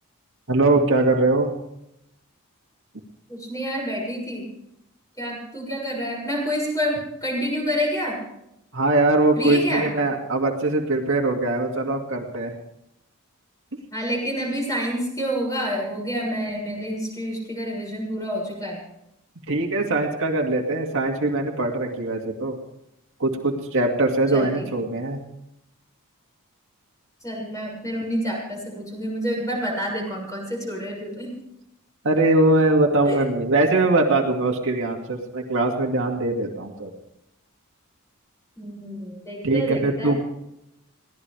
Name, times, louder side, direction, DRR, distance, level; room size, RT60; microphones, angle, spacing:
voice 1, 0.5-1.5 8.7-12.5 19.5-22.5 23.2-25.2 32.0-36.9 39.4-40.2, right 2 dB, 60° right, 1 dB, 2.3 m, -21 dB
voice 2, 3.3-4.5 5.2-8.2 9.4-9.9 13.9-18.8 24.3-24.7 27.2-31.3 33.1-33.2 34.8-34.9 38.6-40.2, equal, 15° left, -1 dB, 6.9 m, -28 dB
22.5 x 17.0 x 3.4 m, 0.81 s
head